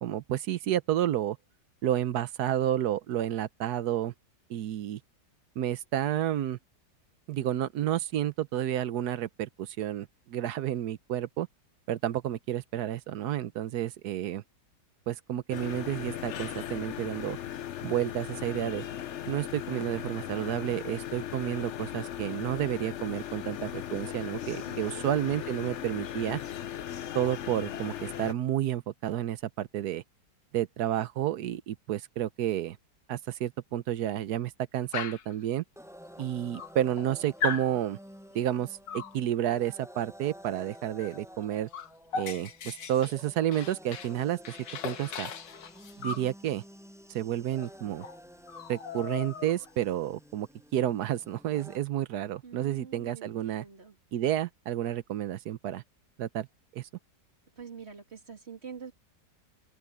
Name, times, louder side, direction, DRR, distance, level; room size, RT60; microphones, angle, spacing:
voice 1, 0.0-1.4 1.8-4.1 4.5-5.0 5.6-6.6 7.3-11.5 11.9-14.4 15.1-17.4 17.8-18.8 19.3-26.4 27.1-30.0 30.5-32.8 33.1-35.6 36.2-38.0 38.3-38.7 38.9-41.7 42.1-44.6 44.8-45.3 46.0-46.6 47.1-48.1 48.7-53.6 54.1-55.8 56.2-56.5 56.7-56.8, right 11 dB, 70° right, 1.2 m, -30 dB
sound 1, 15.5-28.3, left 11 dB, 55° left, 0.9 m, -38 dB
voice 2, 24.6-25.0 52.4-54.0 57.6-58.9, right 6 dB, 35° right, 3.0 m, -46 dB
Dog, 34.9-35.3 36.2-36.3 36.5-37.1 37.4-37.7 38.9-39.2 41.0-41.2 41.4-44.2 44.5-46.3 47.6-47.7 48.0-48.2 48.5-49.7, left 5 dB, 85° left, 1.9 m, -37 dB
sound 2, 35.8-51.8, equal, ahead, 8.0 m, -51 dB
omnidirectional pair, 1.9 m